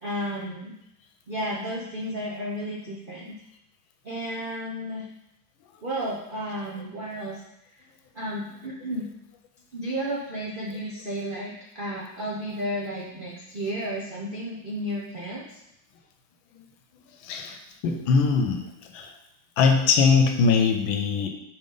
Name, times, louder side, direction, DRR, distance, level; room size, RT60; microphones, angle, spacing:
voice 1, 0.0-0.7 1.3-3.3 4.0-5.1 5.8-7.4 8.1-9.1 9.7-15.6, equal, 85° right, -4 dB, 0.4 m, -32 dB
voice 2, 17.2-18.7 18.9-19.1 19.6-21.3, left 5 dB, 80° left, 5 dB, 1.4 m, -21 dB
5.2 x 4.9 x 3.9 m, 0.81 s
omnidirectional pair, 2.2 m